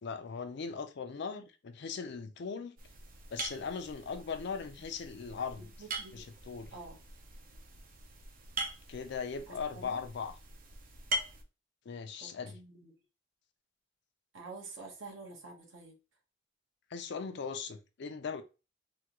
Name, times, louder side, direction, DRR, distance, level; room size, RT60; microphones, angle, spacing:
voice 1, 0.0-2.8 3.3-5.7 6.1-6.7 8.9-10.4 11.9-12.6 16.9-18.4, left 5 dB, 55° left, 0.4 m, -39 dB
sound 1, 2.8-11.4, right 2 dB, 45° right, 0.5 m, -42 dB
voice 2, 5.8-6.3 6.7-7.0 9.5-10.0 12.2-12.9 14.3-16.0, right 3 dB, 70° right, 1.1 m, -48 dB
3.4 x 2.2 x 2.8 m
head